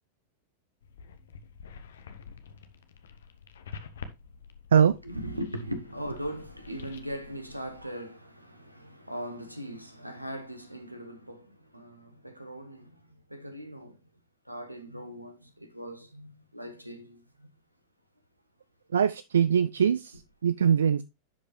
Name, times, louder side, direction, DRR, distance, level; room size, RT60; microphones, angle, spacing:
sound 1, 0.8-7.9, left 6 dB, 65° left, 0.9 m, -48 dB
voice 1, 5.0-12.9 13.3-14.0 14.5-17.5, equal, 90° right, 1.2 m, -39 dB
voice 2, 18.9-21.0, right 8 dB, 65° right, 0.3 m, -22 dB
10.5 x 5.1 x 3.2 m
figure-of-eight pair, 90°, 0 cm